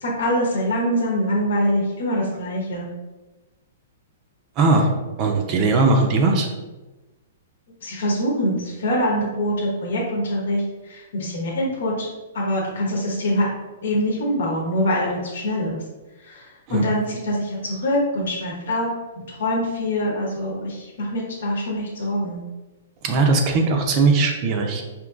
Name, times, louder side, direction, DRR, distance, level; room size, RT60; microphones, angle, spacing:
voice 1, 0.0-2.9 7.8-13.5 13.8-15.8 16.2-18.9 19.3-22.4, equal, 75° left, -2 dB, 1.0 m, -24 dB
voice 2, 4.6-4.9 5.2-6.5 16.7-16.9 23.0-24.8, right 3 dB, 30° right, 2 dB, 0.4 m, -19 dB
5.1 x 2.8 x 2.4 m, 1.1 s
hypercardioid pair, 160°, 0 cm